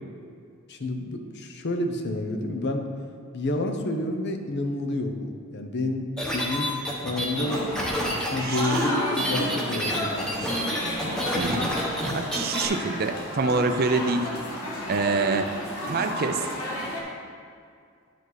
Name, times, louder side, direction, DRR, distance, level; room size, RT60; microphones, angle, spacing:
voice 1, 0.7-2.9 3.3-6.7 7.0-7.7 8.1-10.6, left 2 dB, 55° left, 5 dB, 0.7 m, -29 dB
sound 1, 6.2-12.7, equal, 5° left, 1.1 m, -29 dB
sound 2, 7.3-17.0, left 1 dB, 85° left, 1.7 m, -32 dB
voice 2, 8.4-8.9 11.3-11.7 12.1-14.3 14.9-15.6 15.8-16.4, right 4 dB, 45° right, 8 dB, 0.4 m, -26 dB
11.0 x 5.1 x 4.0 m, 2.2 s
head